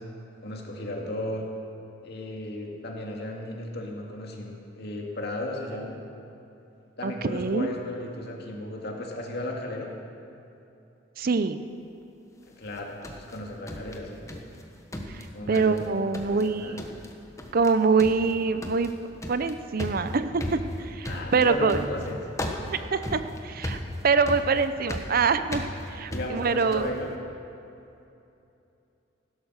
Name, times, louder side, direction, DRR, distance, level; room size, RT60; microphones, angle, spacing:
voice 1, 0.4-1.5 2.0-6.0 7.0-9.9 12.5-14.3 15.3-16.8 21.1-22.2 26.1-27.1, left 1 dB, 60° left, 0 dB, 2.2 m, -35 dB
voice 2, 7.0-7.7 11.2-11.6 15.1-16.8 17.5-18.9 19.3-21.8 22.9-23.8 24.0-26.9, right 4 dB, 50° right, 11 dB, 0.6 m, -25 dB
sound 1, 12.7-14.6 14.9-15.9 16.1-16.5 16.8-17.1 17.4-17.7 18.0-27.0, left 1 dB, 15° left, 1.3 m, -36 dB
16.0 x 12.0 x 6.5 m, 2.8 s
head